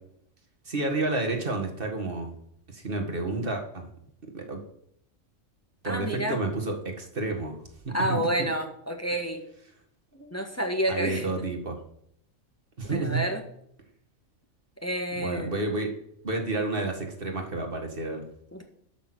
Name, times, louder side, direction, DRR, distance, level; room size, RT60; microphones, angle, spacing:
voice 1, 0.7-2.3 2.7-3.9 4.3-4.6 5.8-7.6 7.8-8.2 10.1-10.3 10.9-11.8 12.8-13.2 15.2-15.9 16.2-18.2, right 2 dB, 40° right, 3 dB, 2.0 m, -30 dB
voice 2, 5.8-6.4 7.9-9.4 10.3-11.3 12.8-13.4 14.8-15.6 18.5-18.6, equal, 10° left, 4 dB, 1.3 m, -29 dB
12.0 x 6.2 x 6.1 m, 0.71 s
omnidirectional pair, 1.4 m